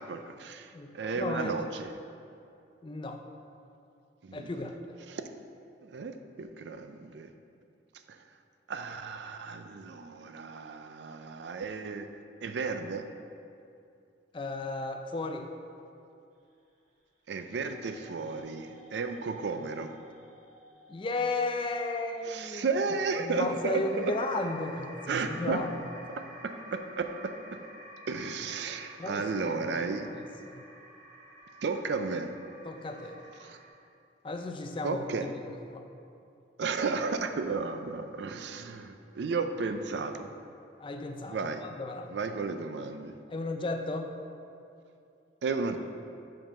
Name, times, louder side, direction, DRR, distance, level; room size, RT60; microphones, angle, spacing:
voice 1, 0.0-1.9 4.2-4.5 5.1-5.2 5.8-7.3 8.1-8.2 8.7-12.1 12.4-13.1 17.3-19.9 22.2-23.8 25.1-25.7 26.2-27.6 28.1-30.1 31.6-32.3 33.4-33.6 34.8-35.3 36.6-40.3 41.3-41.6 42.1-43.2 45.4-45.8, right 4 dB, 65° right, 8 dB, 0.4 m, -33 dB
voice 2, 1.2-1.7 2.8-3.2 4.3-4.7 14.3-15.5 20.9-22.6 23.2-25.7 29.0-29.2 30.0-30.1 30.5-30.6 32.6-33.2 34.2-35.8 40.8-41.4 41.6-42.1 43.3-44.2, left 2 dB, 25° left, 5 dB, 0.4 m, -34 dB
sound 1, 17.4-33.7, equal, 40° right, 1.1 m, -51 dB
5.6 x 5.2 x 5.4 m, 2.6 s
head